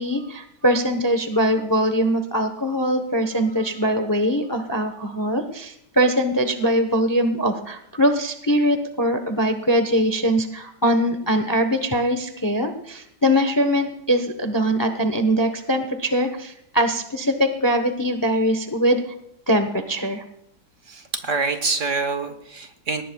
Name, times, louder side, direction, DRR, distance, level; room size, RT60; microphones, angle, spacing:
voice 1, 0.0-19.0 19.5-20.2, equal, 15° left, 7 dB, 0.7 m, -22 dB
voice 2, 20.8-23.0, right 4 dB, 50° right, 7 dB, 1.4 m, -26 dB
20.0 x 18.0 x 2.3 m, 0.76 s
omnidirectional pair, 1.8 m